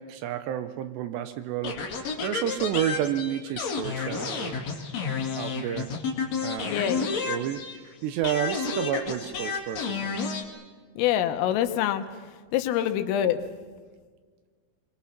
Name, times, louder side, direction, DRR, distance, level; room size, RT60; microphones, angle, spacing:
voice 1, 0.0-1.9 2.2-4.6 5.4-6.0 6.4-6.8 7.3-10.2, right 10 dB, 80° right, 11 dB, 2.5 m, -30 dB
sound 1, 1.6-7.9 8.2-10.4, left 5 dB, 45° left, 2.5 m, -31 dB
voice 2, 6.7-7.1 11.0-12.0 12.5-13.4, left 11 dB, 85° left, 8 dB, 3.7 m, -25 dB
28.5 x 23.0 x 5.9 m, 1.5 s
omnidirectional pair, 5.7 m